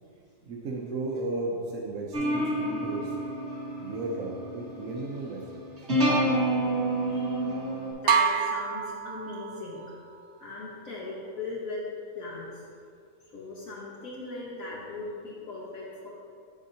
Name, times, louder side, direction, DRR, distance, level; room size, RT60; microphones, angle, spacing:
voice 1, 0.4-3.1 3.8-5.6, right 2 dB, 65° right, -3 dB, 1.2 m, -34 dB
sound 1, 2.1-7.9, right 1 dB, 45° right, 2.1 m, -29 dB
voice 2, 7.1-7.5 8.0-9.8 10.4-11.8 12.1-12.6 13.3-16.1, left 2 dB, 60° left, -5 dB, 1.5 m, -39 dB
sound 2, 8.1-9.9, right 6 dB, 80° right, 0.5 m, -26 dB
8.6 x 7.2 x 2.8 m, 2.3 s
omnidirectional pair, 1.6 m